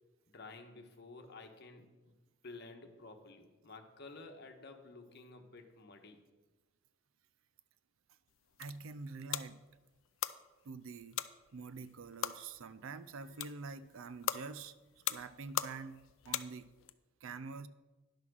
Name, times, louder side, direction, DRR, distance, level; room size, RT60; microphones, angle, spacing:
voice 1, 0.3-2.1 2.4-6.2, left 3 dB, 55° left, 4 dB, 1.2 m, -52 dB
sound 1, 8.3-16.9, left 11 dB, 70° left, 0.4 m, -42 dB
voice 2, 8.6-9.6 10.6-11.2 11.5-14.8 15.1-16.7 17.2-17.7, right 4 dB, 75° right, 15 dB, 0.5 m, -46 dB
10.5 x 5.8 x 6.2 m, 1.2 s
head